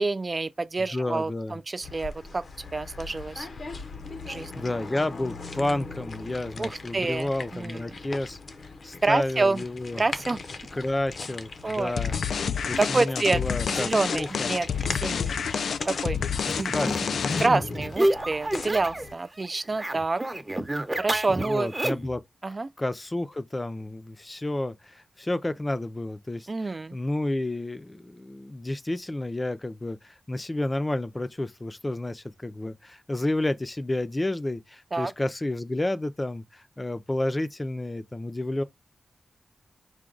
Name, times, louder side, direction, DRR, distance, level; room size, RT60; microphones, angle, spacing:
voice 1, 0.0-3.5 4.2-4.6 6.6-7.8 9.0-9.6 10.0-10.4 11.6-11.9 12.8-13.4 13.7-15.3 15.9-16.2 16.6-17.0 17.4-20.2 21.0-21.7 22.4-22.7 26.5-27.0 34.9-35.1, right 3 dB, 40° right, 0.3 m, -28 dB
voice 2, 0.8-1.6 4.6-8.4 8.8-10.0 10.7-12.1 12.7-14.5 16.7-17.2 21.3-22.2 22.8-38.6, left 1 dB, 25° left, 0.5 m, -31 dB
sound 1, 1.8-19.2, left 3 dB, 65° left, 0.7 m, -39 dB
sound 2, 12.0-17.7, left 6 dB, 90° left, 0.3 m, -29 dB
sound 3, 16.4-19.1 19.4-22.2, right 1 dB, 20° right, 0.7 m, -30 dB
4.8 x 2.2 x 3.8 m
cardioid pair, 75°, 0 cm